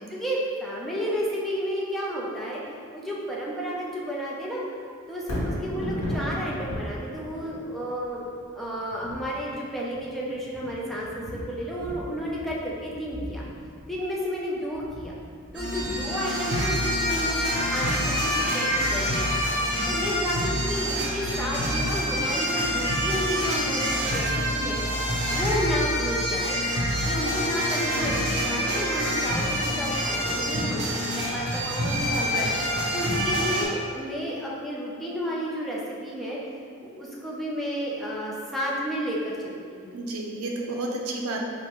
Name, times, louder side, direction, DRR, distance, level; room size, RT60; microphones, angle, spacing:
voice 1, 0.1-2.6 2.9-4.6 5.1-13.4 13.9-15.1 15.5-26.6 27.0-32.5 32.9-36.4 36.8-39.9, equal, ahead, -6 dB, 0.5 m, -32 dB
Thunder, 5.2-19.4 19.8-19.9, equal, 80° left, 1.0 m, -37 dB
sound 1, 15.5-33.6, equal, 55° right, 0.8 m, -26 dB
voice 2, 39.9-41.5, right 2 dB, 85° right, 0 dB, 0.5 m, -31 dB
4.8 x 2.1 x 2.9 m, 2.3 s
head